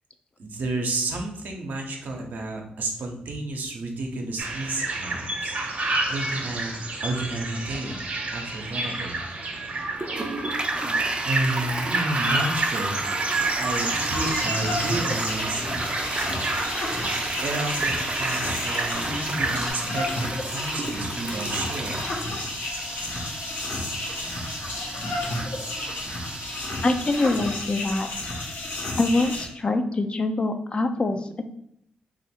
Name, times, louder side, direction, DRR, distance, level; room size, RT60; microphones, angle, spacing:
voice 1, 0.4-5.5 6.1-9.2 10.9-11.0 11.3-13.0 13.4-15.6 17.4-22.1, right 2 dB, 75° right, 1 dB, 0.8 m, -31 dB
sound 1, 4.4-19.7, right 2 dB, 50° right, 0.9 m, -29 dB
Toilet flush, 9.9-27.9, right 2 dB, 30° right, 0.5 m, -33 dB
sound 2, 13.3-29.5, left 2 dB, 80° left, 0.8 m, -32 dB
voice 2, 19.1-19.4 26.8-28.1 29.0-31.5, left 2 dB, 35° left, 6 dB, 0.4 m, -25 dB
3.0 x 2.5 x 4.3 m, 0.72 s
cardioid pair, 65°, 3 cm